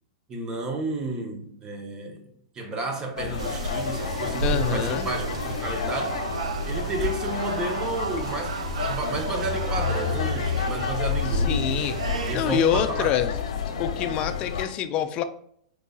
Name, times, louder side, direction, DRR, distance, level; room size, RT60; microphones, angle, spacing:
voice 1, 0.3-2.2 2.5-6.2 6.7-11.8 12.3-13.2, right 3 dB, 20° right, 0.8 m, -32 dB
sound 1, 3.2-14.7, left 7 dB, 75° left, 0.8 m, -30 dB
sound 2, 3.4-12.4, right 4 dB, 85° right, 0.4 m, -32 dB
voice 2, 4.4-5.1 11.3-12.0 12.3-13.3 13.8-15.2, left 9 dB, 30° left, 0.4 m, -26 dB
4.6 x 4.0 x 2.3 m
hypercardioid pair, 140°, 3 cm